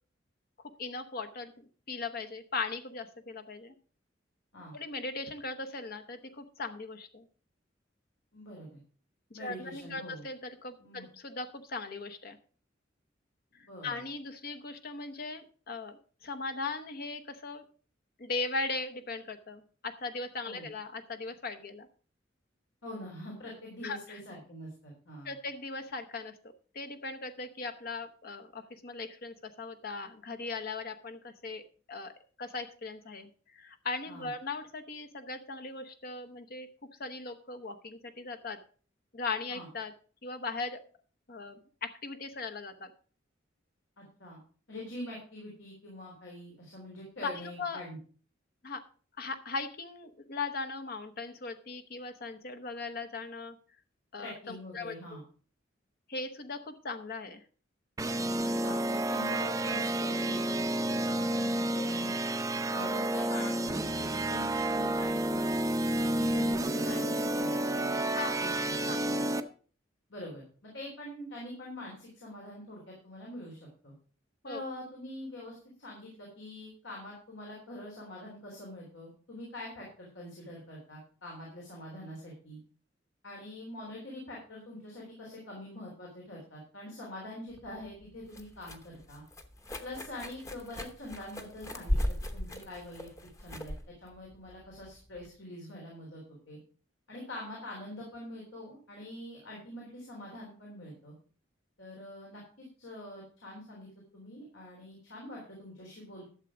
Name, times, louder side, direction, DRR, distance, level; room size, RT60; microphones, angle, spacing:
voice 1, 0.8-3.7 4.7-7.2 9.3-12.4 13.5-17.6 18.2-21.9 23.8-24.2 25.2-32.1 32.4-36.7 37.0-38.6 39.1-39.9 40.2-40.8 41.3-42.9 47.2-47.8 48.6-48.8 49.2-53.6 54.1-55.2 56.1-57.4 68.2-68.4 68.9-69.0 74.4-74.6, left 3 dB, 55° left, 8 dB, 0.9 m, -39 dB
voice 2, 8.3-8.8 9.3-10.3 10.8-11.1 13.5-14.0 20.4-20.7 22.8-25.3 34.1-34.3 39.5-39.7 44.0-44.4 44.7-48.0 54.2-55.2 58.6-62.1 62.7-65.5 65.9-68.0 68.4-69.2 70.1-73.9 74.5-82.6 83.2-89.2 89.8-93.1 93.4-96.2 96.5-96.6 97.1-101.1 101.8-106.3, left 1 dB, 85° left, -3 dB, 3.7 m, -44 dB
sound 1, 58.0-69.4, right 1 dB, 20° right, 0.6 m, -30 dB
sound 2, 87.5-95.3, equal, 15° left, 0.9 m, -37 dB
12.0 x 7.1 x 4.9 m, 0.42 s
head